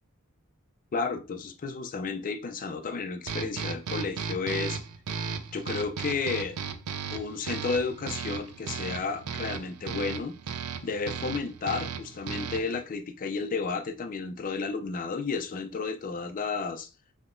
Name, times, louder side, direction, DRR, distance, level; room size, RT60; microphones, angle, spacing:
voice 1, 0.9-4.8 5.5-6.6 7.1-10.3 10.8-16.9, left 4 dB, 40° left, 0.4 m, -32 dB
sound 1, 3.3-12.8, right 6 dB, 80° right, 0.4 m, -36 dB
3.3 x 2.8 x 2.5 m
head